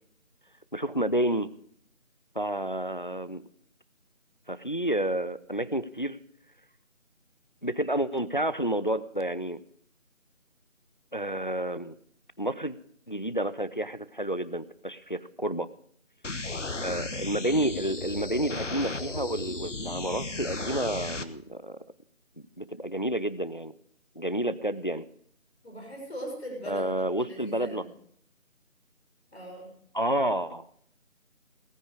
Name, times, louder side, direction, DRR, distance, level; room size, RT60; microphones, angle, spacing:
voice 1, 0.7-1.5 2.4-3.4 4.5-6.2 7.6-9.6 11.1-12.0 12.4-12.8 13.1-15.7 16.8-21.8 22.6-23.7 24.2-25.1 26.7-27.9 29.9-30.7, right 1 dB, 40° left, 15 dB, 0.5 m, -30 dB
sound 1, 16.2-21.2, left 3 dB, 65° left, 1.2 m, -35 dB
voice 2, 25.6-27.9 29.3-29.7, equal, ahead, -26 dB, 1.6 m, -40 dB
17.5 x 10.0 x 4.8 m, 0.64 s
figure-of-eight pair, 165°, 40 cm